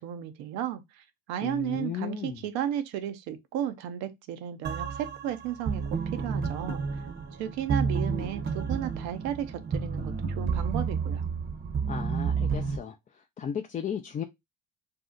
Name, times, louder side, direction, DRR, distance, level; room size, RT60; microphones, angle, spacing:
voice 1, 0.0-5.8 6.1-6.8 7.4-11.2, right 10 dB, 75° right, 0.6 m, -34 dB
voice 2, 1.4-2.4 11.9-14.2, left 8 dB, 25° left, 0.4 m, -35 dB
sound 1, 4.6-12.8, right 5 dB, 35° right, 0.8 m, -31 dB
2.7 x 2.0 x 3.7 m
supercardioid pair, 75°, 29 cm